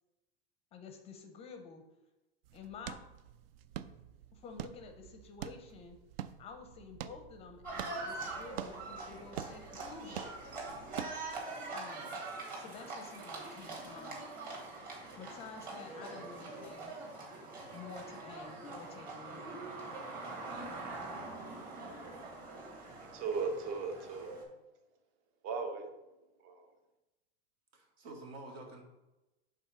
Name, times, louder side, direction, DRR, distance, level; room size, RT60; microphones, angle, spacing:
voice 1, 0.7-1.8 2.5-3.0 4.3-6.0 6.4-10.2 11.7-12.2 12.6-14.3 15.2-16.9 17.7-19.5, left 5 dB, 20° left, 6 dB, 0.5 m, -50 dB
sound 1, 2.4-11.4, right 10 dB, 70° right, 0.5 m, -47 dB
Livestock farm animals working animals, 7.6-24.4, right 3 dB, 30° right, 1.8 m, -44 dB
voice 2, 23.0-24.4 25.4-25.9 26.4-26.7, right 4 dB, 45° right, 4 dB, 1.1 m, -37 dB
voice 3, 27.7-28.8, right 2 dB, 85° right, 1 dB, 2.0 m, -48 dB
5.5 x 3.8 x 5.9 m, 0.99 s
supercardioid pair, 155°, 31 cm